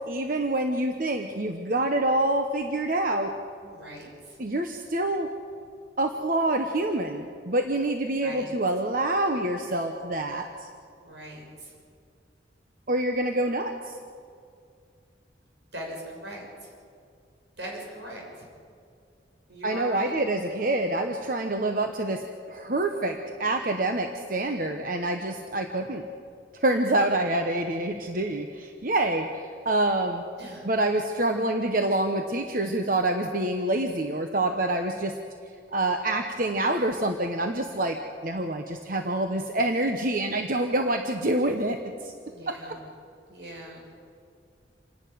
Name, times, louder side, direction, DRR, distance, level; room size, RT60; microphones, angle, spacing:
voice 1, 0.1-3.3 4.4-5.3 6.0-10.7 12.9-13.9 19.6-26.0 26.5-30.2 30.6-35.1 35.7-42.1 42.5-42.8, right 2 dB, 50° right, 4 dB, 1.1 m, -27 dB
voice 2, 3.6-4.4 8.2-8.5 11.0-11.7 15.7-16.4 17.6-18.5 19.5-20.2 30.4-30.7 42.2-42.8 43.3-43.9, right 1 dB, 75° right, -1 dB, 6.4 m, -40 dB
27.5 x 11.5 x 9.4 m, 2.3 s
head